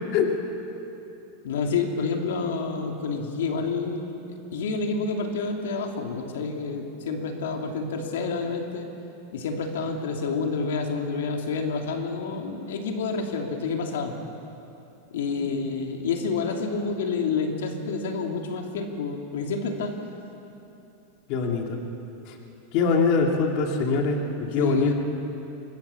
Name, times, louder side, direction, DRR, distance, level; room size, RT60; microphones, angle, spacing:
voice 1, 1.4-4.2 4.5-8.9 9.3-14.1 15.1-19.9 24.6-24.9, left 4 dB, 85° left, 3 dB, 2.9 m, -28 dB
voice 2, 21.3-21.8 22.7-24.9, left 4 dB, 45° left, 2 dB, 2.6 m, -23 dB
25.5 x 22.0 x 7.2 m, 2.9 s
supercardioid pair, 160°, 0 cm